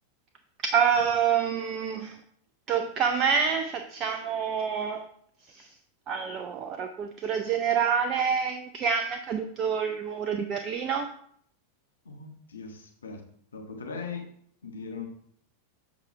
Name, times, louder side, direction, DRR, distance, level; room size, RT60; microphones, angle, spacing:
voice 1, 0.6-2.2 2.7-5.0 5.5-5.7 6.1-11.1, right 7 dB, 35° right, 6 dB, 0.6 m, -27 dB
voice 2, 12.0-13.2 13.5-14.3 14.6-15.1, left 5 dB, 70° left, 1 dB, 1.5 m, -39 dB
7.7 x 5.0 x 4.6 m, 0.65 s
figure-of-eight pair, 90°, 0 cm